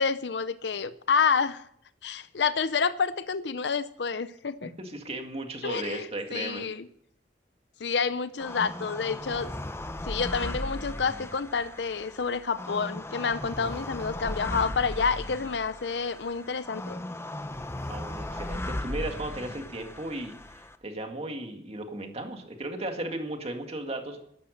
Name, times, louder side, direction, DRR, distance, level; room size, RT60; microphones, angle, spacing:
voice 1, 0.0-1.6 2.0-4.7 5.6-6.9 7.8-9.5 10.0-17.0, left 5 dB, 70° left, 14 dB, 0.6 m, -29 dB
voice 2, 4.8-6.6 17.9-24.2, right 1 dB, 35° right, 4 dB, 2.1 m, -36 dB
sound 1, 8.4-20.8, left 1 dB, 15° left, 0.7 m, -37 dB
13.0 x 12.0 x 6.6 m, 0.69 s
head